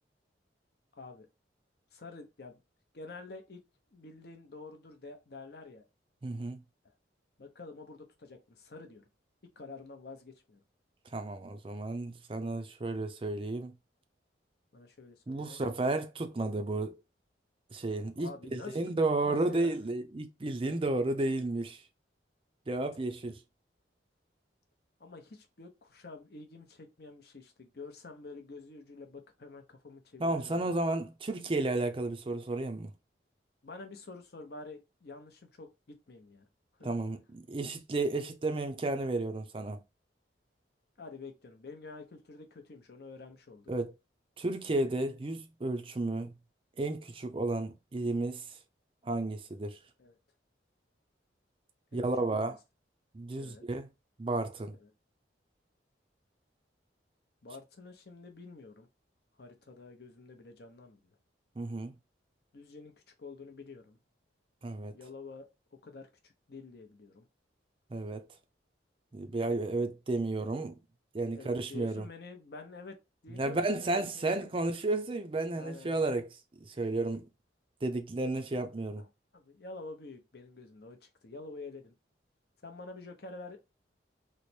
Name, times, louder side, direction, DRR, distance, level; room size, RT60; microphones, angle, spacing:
voice 1, 1.0-1.3 1.9-2.6 2.9-3.6 3.9-5.9 6.8-6.9 7.4-9.0 9.6-10.6 14.7-15.6 18.2-18.8 19.3-19.8 25.0-30.8 33.6-36.5 36.8-36.9 41.0-43.7 50.0-50.1 51.9-52.0 52.3-52.6 53.4-53.6 54.8-54.9 57.4-58.9 59.4-61.0 62.5-62.9 63.2-64.0 64.9-67.3 71.2-74.5 75.5-76.0 79.0-79.1 79.3-81.9 82.6-83.6, left 3 dB, 55° left, 0.7 m, -48 dB
voice 2, 6.2-6.6 11.1-13.7 15.3-17.0 17.7-21.8 22.7-23.4 30.2-32.9 36.8-39.8 43.7-43.9 44.4-46.3 46.8-48.6 49.0-49.8 51.9-52.6 53.1-53.9 54.2-54.8 61.6-61.9 64.6-64.9 67.9-68.2 69.1-70.7 71.1-72.1 73.4-76.3 76.6-77.3 77.8-79.0, right 2 dB, 30° right, 0.4 m, -32 dB
3.2 x 2.0 x 4.2 m
head